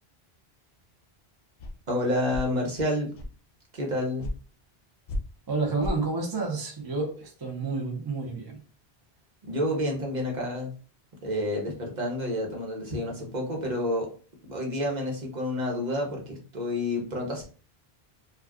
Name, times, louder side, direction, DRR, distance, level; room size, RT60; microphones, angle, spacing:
sound 1, 1.6-1.7 2.3-2.5 3.1-3.3 4.2-4.3 5.1-5.2 5.8-6.0, left 1 dB, 55° left, 0.4 m, -32 dB
voice 1, 1.9-3.1 3.7-4.3 9.5-10.7 11.2-14.1 14.5-17.4, left 1 dB, 45° right, 0 dB, 0.9 m, -29 dB
voice 2, 5.5-8.6, right 3 dB, 30° right, 1 dB, 0.5 m, -30 dB
2.4 x 2.3 x 3.4 m, 0.37 s
omnidirectional pair, 1.1 m